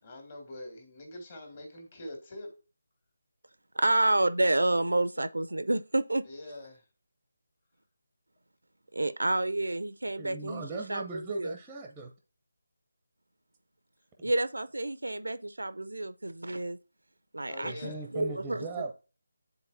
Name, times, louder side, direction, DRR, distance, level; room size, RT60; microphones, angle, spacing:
voice 1, 0.0-2.5 6.2-6.8 17.5-18.0, left 1 dB, 40° left, 2.1 m, -44 dB
voice 2, 3.8-6.2 8.9-11.5 14.2-16.8 17.3-18.8, right 2 dB, 80° right, 0.5 m, -29 dB
voice 3, 10.2-12.1 14.2-14.3 17.6-18.9, right 3 dB, 10° right, 0.6 m, -39 dB
9.7 x 4.0 x 2.6 m
figure-of-eight pair, 155°, 0 cm